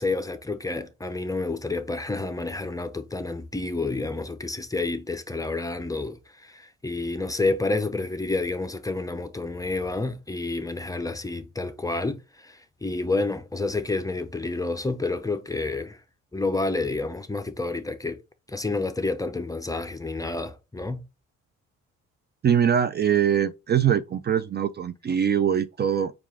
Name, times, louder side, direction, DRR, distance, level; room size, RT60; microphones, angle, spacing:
voice 1, 0.0-16.0 16.3-18.2 18.5-21.0, left 3 dB, 10° left, 0.6 m, -29 dB
voice 2, 22.4-26.1, right 8 dB, 35° right, 0.4 m, -22 dB
4.7 x 2.4 x 3.5 m
cardioid pair, 90°, 30 cm